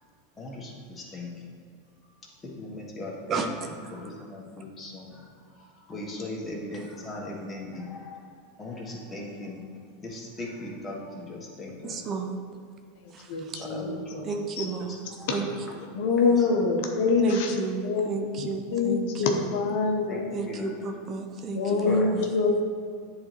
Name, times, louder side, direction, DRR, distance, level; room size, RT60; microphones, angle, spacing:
voice 1, 0.4-1.3 2.4-5.3 5.5-8.2 8.6-9.6 10.0-12.0 13.6-14.2 14.9-15.4 16.4-16.7 20.1-20.9 21.8-22.1, left 2 dB, 20° left, -3 dB, 1.6 m, -39 dB
voice 2, 3.3-4.0 11.8-12.4 13.1-13.6 14.2-15.0 15.3-15.5 17.2-19.4 20.3-22.2, right 4 dB, 35° right, 4 dB, 0.6 m, -33 dB
voice 3, 13.3-14.3 14.6-14.7 15.9-18.1 18.4-20.3 21.5-22.6, left 4 dB, 60° left, 2 dB, 0.8 m, -25 dB
9.6 x 4.0 x 3.1 m, 2.2 s
hypercardioid pair, 90°, 0 cm